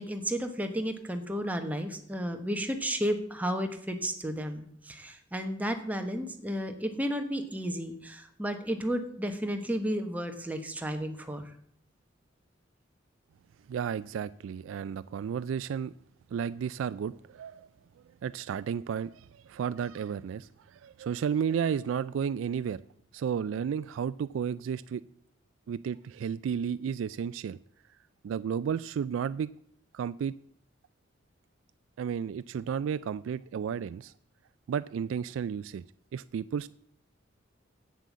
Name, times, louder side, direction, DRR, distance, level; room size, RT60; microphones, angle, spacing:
voice 1, 0.0-11.5, equal, 10° right, 5 dB, 1.1 m, -33 dB
voice 2, 13.7-15.9 16.3-17.7 18.2-22.8 23.1-25.0 25.7-27.6 28.2-29.5 29.9-30.3 32.0-34.1 34.7-35.8 36.1-36.7, right 7 dB, 90° right, 15 dB, 0.3 m, -32 dB
8.3 x 7.6 x 7.3 m, 0.66 s
head